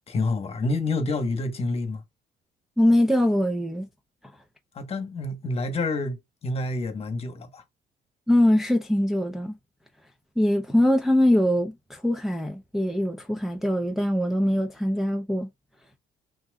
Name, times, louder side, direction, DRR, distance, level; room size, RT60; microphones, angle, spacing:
voice 1, 0.1-2.0 4.7-6.2 6.4-7.6, left 2 dB, 35° left, 1.2 m, -28 dB
voice 2, 2.8-3.9 8.3-9.6 10.4-15.5, left 1 dB, ahead, 0.6 m, -22 dB
5.9 x 2.7 x 2.3 m
cardioid pair, 110°, 17 cm